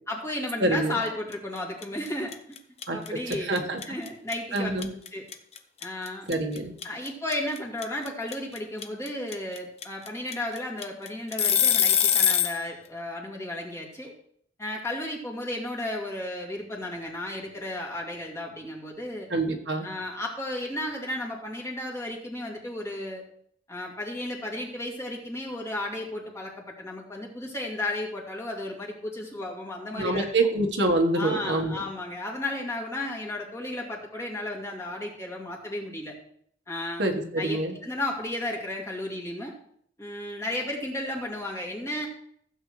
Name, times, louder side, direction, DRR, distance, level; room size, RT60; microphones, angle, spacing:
voice 1, 0.1-2.3 2.9-4.7 5.1-5.3 5.8-6.3 6.8-14.1 14.6-19.3 19.8-23.2 23.7-30.3 31.1-36.1 36.7-37.0 37.4-39.5 40.0-42.1, left 1 dB, 15° left, -3 dB, 2.5 m, -34 dB
voice 2, 0.6-1.0 2.9-3.0 3.3-3.8 4.5-4.9 6.3-6.7 19.3-19.9 30.0-31.8 37.0-37.8, right 2 dB, 75° right, 3 dB, 1.5 m, -26 dB
sound 1, 1.3-1.6 1.8-12.6, left 9 dB, 35° left, 0.8 m, -24 dB
15.5 x 8.1 x 3.2 m, 0.65 s
head